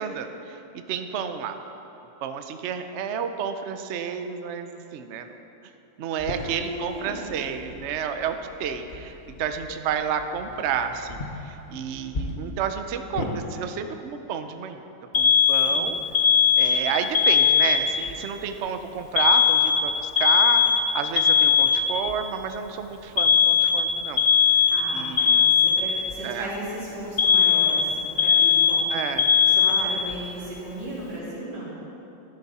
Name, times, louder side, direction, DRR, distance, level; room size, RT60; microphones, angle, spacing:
voice 1, 0.0-1.6 2.2-5.3 6.0-14.8 15.1-16.0 16.5-20.6 20.9-24.2 24.5-24.7 24.9-25.5 26.2-26.5 28.9-29.3 29.6-30.1, right 7 dB, 90° right, 7 dB, 0.6 m, -31 dB
sound 1, 6.2-13.3, left 2 dB, 35° left, 1.0 m, -38 dB
voice 2, 6.3-7.3 15.6-16.0 24.7-29.1 29.4-31.7, right 1 dB, 60° right, -8 dB, 3.9 m, -36 dB
Alarm, 15.1-18.1 19.2-22.1 23.2-26.1 27.2-30.2, left 7 dB, 75° left, 0.4 m, -19 dB
14.5 x 11.0 x 4.2 m, 3.0 s
omnidirectional pair, 2.1 m